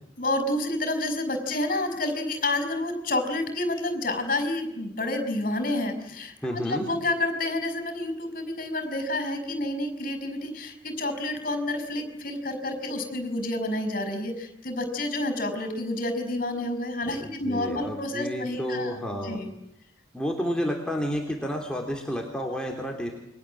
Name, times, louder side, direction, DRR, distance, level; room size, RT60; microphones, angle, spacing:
voice 1, 0.2-18.9 19.2-19.5, left 1 dB, 50° left, 8 dB, 5.5 m, -29 dB
voice 2, 6.4-6.8 17.1-19.4 20.1-23.1, equal, 5° left, 0 dB, 3.2 m, -30 dB
29.0 x 23.5 x 7.6 m, 0.78 s
head